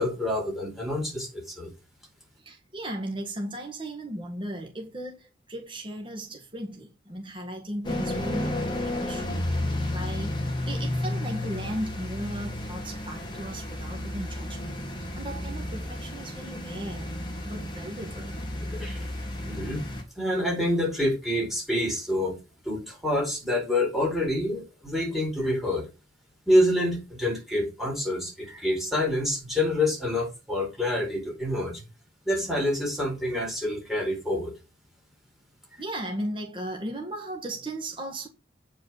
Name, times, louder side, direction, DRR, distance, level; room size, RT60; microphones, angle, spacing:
voice 1, 0.0-1.7 18.7-19.1 19.5-19.8 20.2-22.4 22.6-25.9 26.5-31.8 32.2-34.5 35.7-35.8, left 1 dB, ahead, 4.3 m, -27 dB
voice 2, 2.4-9.4 9.9-17.1 17.4-18.3 35.8-38.3, right 1 dB, 25° right, 1.7 m, -36 dB
sound 1, 7.8-20.0, left 1 dB, 25° left, 2.4 m, -32 dB
9.1 x 5.5 x 6.1 m
head